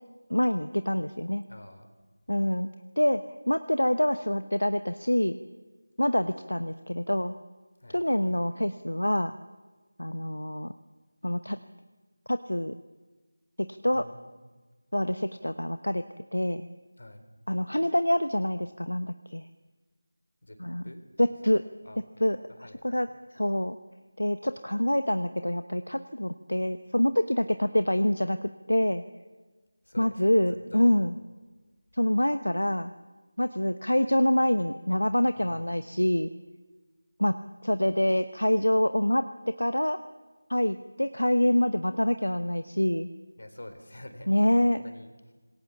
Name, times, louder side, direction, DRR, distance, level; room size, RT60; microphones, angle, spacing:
voice 1, 0.3-1.5 2.3-2.7 3.0-5.4 6.0-7.4 7.9-9.4 10.0-10.7 11.2-11.6 12.3-12.8 13.6-14.0 14.9-16.0 16.3-16.7 17.5-19.5 20.6-20.8 21.2-21.6 22.2-22.4 22.8-23.1 23.4-23.8 24.2-29.0 30.0-31.1 31.9-32.9 33.4-36.3 37.2-40.0 40.5-43.1 44.3-44.8, left 1 dB, 80° left, 10 dB, 1.1 m, -26 dB
voice 2, 1.5-1.9 7.8-8.0 13.9-14.3 17.0-17.3 20.4-21.0 21.8-22.0 22.6-23.0 29.8-31.0 35.4-35.7 43.4-45.3, left 1 dB, 60° left, 7 dB, 4.1 m, -47 dB
26.5 x 21.5 x 7.3 m, 1.3 s
figure-of-eight pair, 165°, 0 cm